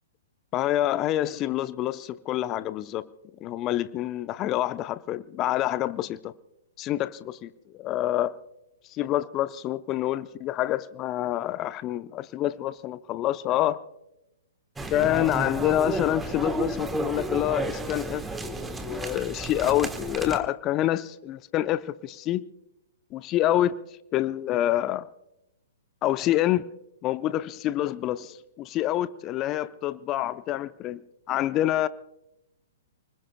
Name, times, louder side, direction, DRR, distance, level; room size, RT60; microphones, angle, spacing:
voice 1, 0.5-3.1 3.4-6.3 6.8-8.4 8.9-13.8 14.9-22.4 23.1-23.7 24.1-25.1 26.0-26.7 27.0-31.0 31.3-31.9, left 13 dB, 30° left, 0.7 m, -27 dB
sound 1, 14.8-20.4, right 3 dB, 10° right, 1.3 m, -32 dB
29.5 x 20.5 x 2.3 m
figure-of-eight pair, 115°, 0 cm